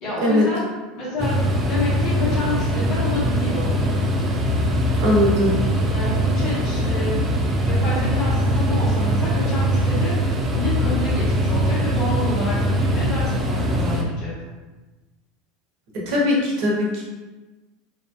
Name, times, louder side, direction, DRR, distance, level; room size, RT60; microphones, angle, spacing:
voice 1, 0.0-3.7 5.9-7.2 7.6-10.2 10.5-14.3, left 2 dB, 50° left, -8 dB, 1.4 m, -29 dB
sound 1, 1.2-14.0, equal, 25° right, 0.4 m, -21 dB
voice 2, 5.0-5.5 16.1-17.0, left 1 dB, 60° right, -4 dB, 0.8 m, -19 dB
2.7 x 2.4 x 2.4 m, 1.2 s
figure-of-eight pair, 80°, 0 cm